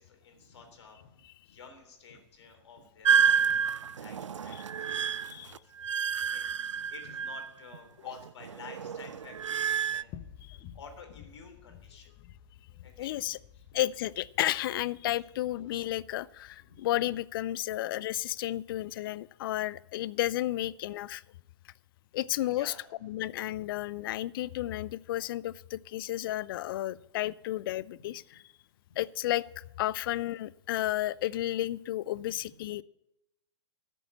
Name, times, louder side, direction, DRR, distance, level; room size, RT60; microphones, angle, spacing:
voice 1, 0.0-5.8 6.2-12.1 12.8-13.2 13.5-13.6 22.4-22.8 26.9-27.0 28.0-28.1 28.9-29.0 32.1-32.2 32.4-32.5, left 5 dB, 70° left, 4 dB, 3.5 m, -52 dB
sound 1, 3.0-7.8 8.1-10.0, right 7 dB, 85° right, 0.4 m, -29 dB
voice 2, 5.0-5.5 5.9-6.3 10.5-10.6 13.0-13.4 13.7-21.2 22.1-22.7 23.0-28.4 29.0-32.8, left 14 dB, 50° left, 20 dB, 0.5 m, -32 dB
sound 2, 9.1-17.5, left 10 dB, 30° left, 1.3 m, -53 dB
13.0 x 7.0 x 8.2 m, 0.87 s
hypercardioid pair, 115°, 15 cm